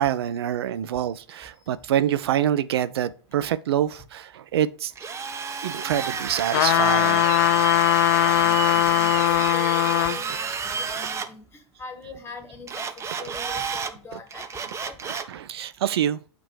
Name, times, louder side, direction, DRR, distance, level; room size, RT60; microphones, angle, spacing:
voice 1, 0.0-4.9 5.6-7.4 13.2-13.3 15.0-16.2, right 11 dB, 60° right, 0.5 m, -26 dB
Drill, 5.0-11.3 12.7-13.9 14.3-15.3, right 5 dB, 20° right, 0.7 m, -30 dB
sound 1, 6.5-10.2 10.7-10.8, left 17 dB, 50° left, 0.4 m, -20 dB
voice 2, 8.1-11.5 11.8-12.8 13.2-15.0, left 3 dB, 15° left, 1.6 m, -42 dB
6.9 x 2.9 x 4.8 m
figure-of-eight pair, 90°, 15 cm